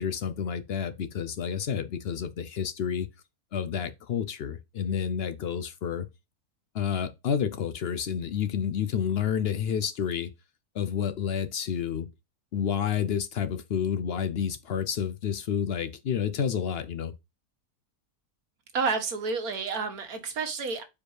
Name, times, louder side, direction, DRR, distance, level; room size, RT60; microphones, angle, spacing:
voice 1, 0.0-3.1 3.5-6.1 6.7-10.3 10.7-12.1 12.5-17.1, left 8 dB, 60° left, 0.6 m, -29 dB
voice 2, 18.7-20.8, right 4 dB, 75° right, 1.7 m, -30 dB
4.9 x 4.6 x 4.7 m
omnidirectional pair, 1.6 m